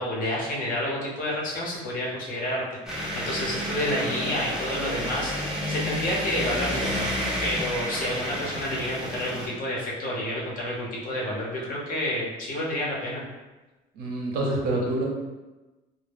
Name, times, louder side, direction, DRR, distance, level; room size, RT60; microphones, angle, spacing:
voice 1, 0.0-7.1 7.4-13.2, left 1 dB, 55° left, -4 dB, 0.9 m, -29 dB
sound 1, 2.9-9.5, equal, 5° right, 0.7 m, -30 dB
voice 2, 13.9-15.1, right 1 dB, 65° right, -2 dB, 0.8 m, -26 dB
2.1 x 2.1 x 3.4 m, 1.1 s
cardioid pair, 110°, 17 cm